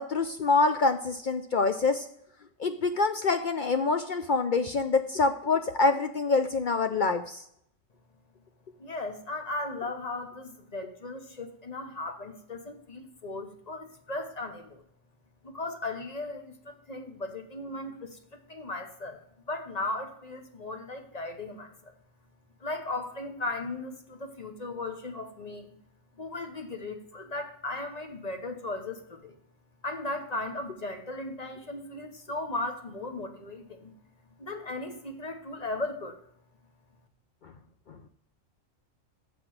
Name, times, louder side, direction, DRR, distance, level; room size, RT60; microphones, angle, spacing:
voice 1, 0.0-2.1 2.6-7.4, left 3 dB, 60° left, 8 dB, 0.5 m, -26 dB
voice 2, 8.8-14.8 15.4-21.9 22.6-25.8 26.2-29.4 29.8-33.9 34.4-36.2, left 2 dB, 35° left, 5 dB, 1.0 m, -37 dB
6.8 x 5.9 x 6.3 m, 0.71 s
omnidirectional pair, 1.3 m